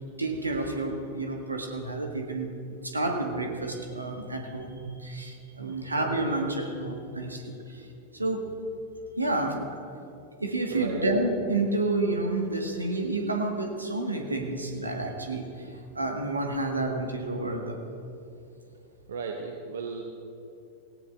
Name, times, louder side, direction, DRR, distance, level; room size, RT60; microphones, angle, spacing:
voice 1, 0.2-2.5 2.8-7.9 8.1-8.4 9.2-9.6 10.4-17.8, right 2 dB, 80° right, 3 dB, 1.4 m, -30 dB
voice 2, 5.6-5.9 10.7-11.0 19.1-20.0, right 5 dB, 65° right, 2 dB, 1.0 m, -35 dB
17.5 x 17.5 x 2.4 m, 2.6 s
figure-of-eight pair, 90°, 0 cm